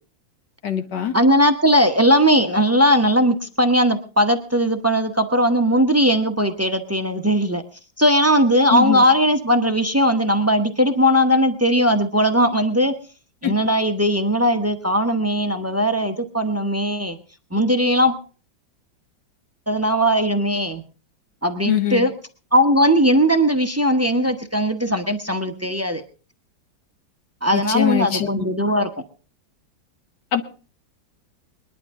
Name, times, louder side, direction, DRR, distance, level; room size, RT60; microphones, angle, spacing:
voice 1, 0.6-1.1 8.7-9.0 13.4-13.5 21.7-22.0 27.5-28.5 30.3-30.4, left 10 dB, 65° left, 8 dB, 1.7 m, -22 dB
voice 2, 1.1-7.6 8.0-12.9 13.4-17.2 17.5-18.2 19.7-20.8 21.4-22.1 22.5-26.0 27.4-28.9, equal, 20° right, 6 dB, 0.4 m, -18 dB
21.5 x 11.5 x 3.6 m, 0.37 s
omnidirectional pair, 2.1 m